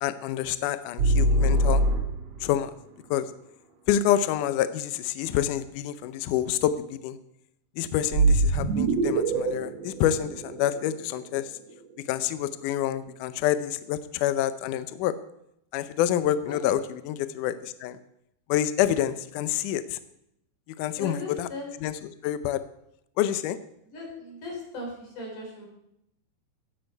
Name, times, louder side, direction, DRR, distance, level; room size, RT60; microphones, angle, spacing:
voice 1, 0.0-1.8 2.4-2.7 3.1-3.3 3.9-7.2 7.8-11.5 12.1-15.1 15.7-18.0 18.5-20.0 20.8-21.5 21.8-22.6 23.2-23.6, left 11 dB, 85° left, 12 dB, 1.8 m, -27 dB
sound 1, 1.0-2.5 8.1-11.2, right 2 dB, 60° right, 1.8 m, -23 dB
voice 2, 20.9-21.7 23.9-25.7, left 2 dB, 55° left, -1 dB, 5.9 m, -38 dB
16.5 x 10.5 x 4.6 m, 0.79 s
omnidirectional pair, 4.5 m